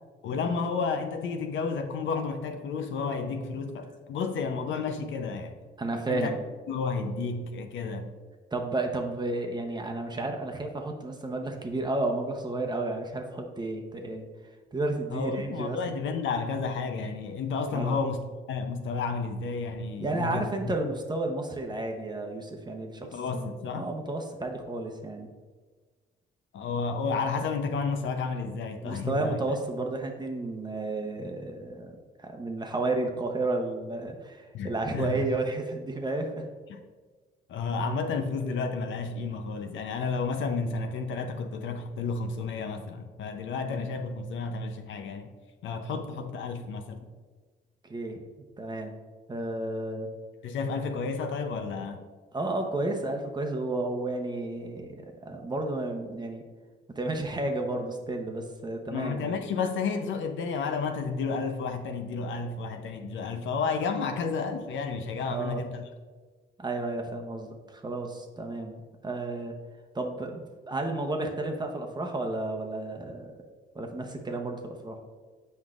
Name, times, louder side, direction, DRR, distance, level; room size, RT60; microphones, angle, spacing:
voice 1, 0.2-5.6 6.1-6.3 6.7-8.1 15.1-18.2 18.5-20.8 23.1-23.9 26.5-29.4 34.5-35.2 36.7-36.8 37.5-45.3 45.6-47.1 50.4-52.0 58.9-65.8, left 4 dB, 75° left, 6 dB, 0.7 m, -31 dB
voice 2, 5.8-6.4 8.5-14.3 14.7-15.8 17.7-18.0 20.0-25.3 28.8-36.5 43.7-43.9 47.9-48.2 48.6-48.9 49.3-50.1 52.3-56.4 57.0-59.3 65.3-65.6 66.6-69.5 69.9-73.3 73.7-75.0, right 2 dB, 20° right, 2 dB, 0.9 m, -32 dB
7.8 x 5.3 x 2.5 m, 1.4 s
cardioid pair, 90°, 20 cm